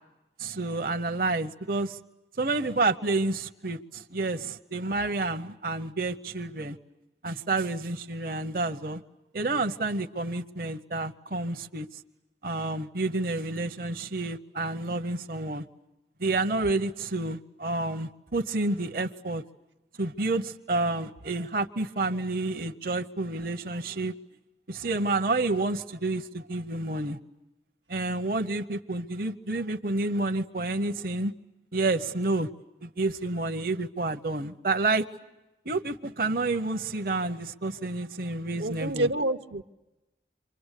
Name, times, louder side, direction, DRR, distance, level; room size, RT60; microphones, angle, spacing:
voice 1, 0.4-2.0 2.4-6.8 7.2-9.0 9.3-12.0 12.4-15.7 16.2-19.4 20.0-24.1 24.7-27.2 27.9-31.3 31.7-32.5 32.8-35.0 35.6-39.1, right 2 dB, 55° right, 6 dB, 0.9 m, -29 dB
voice 2, 38.6-39.6, right 1 dB, 80° right, 7 dB, 0.9 m, -28 dB
28.0 x 25.0 x 8.3 m, 1.0 s
head